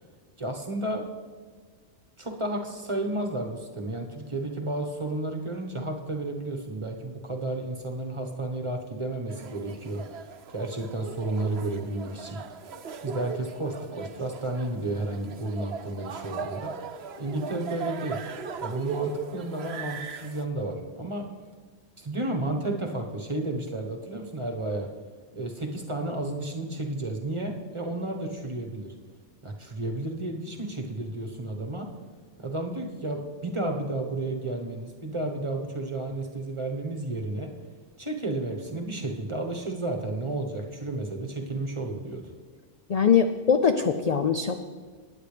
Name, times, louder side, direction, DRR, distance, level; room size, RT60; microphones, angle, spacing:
voice 1, 0.4-1.1 2.2-10.0 10.5-12.4 13.0-16.7 17.2-18.2 18.6-21.3 22.0-24.9 25.3-28.9 29.4-31.9 32.4-37.5 38.0-42.2, right 2 dB, 25° right, 2 dB, 1.2 m, -32 dB
sound 1, 9.3-20.5, right 6 dB, 65° right, 1.0 m, -38 dB
voice 2, 42.9-44.6, left 7 dB, 55° left, 7 dB, 0.4 m, -22 dB
20.0 x 9.5 x 3.4 m, 1.5 s
omnidirectional pair, 1.2 m